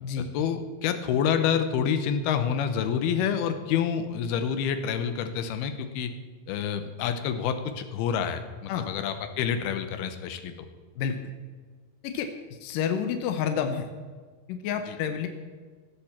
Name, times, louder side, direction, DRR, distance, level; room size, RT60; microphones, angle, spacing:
voice 1, 0.3-6.1 6.5-10.5 14.9-15.0, left 8 dB, 90° left, 9 dB, 2.9 m, -28 dB
voice 2, 12.6-13.9 14.5-15.3, left 7 dB, 70° left, 6 dB, 2.3 m, -29 dB
15.5 x 8.3 x 7.3 m, 1.5 s
omnidirectional pair, 4.3 m